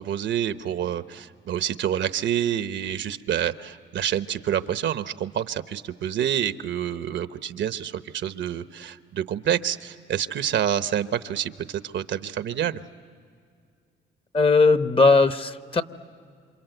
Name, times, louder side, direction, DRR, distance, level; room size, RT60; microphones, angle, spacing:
voice 1, 0.0-12.8, right 10 dB, 70° right, 11 dB, 1.0 m, -28 dB
voice 2, 14.3-15.8, left 3 dB, 30° left, 11 dB, 1.0 m, -18 dB
28.0 x 26.5 x 8.0 m, 2.2 s
cardioid pair, 90°, 20 cm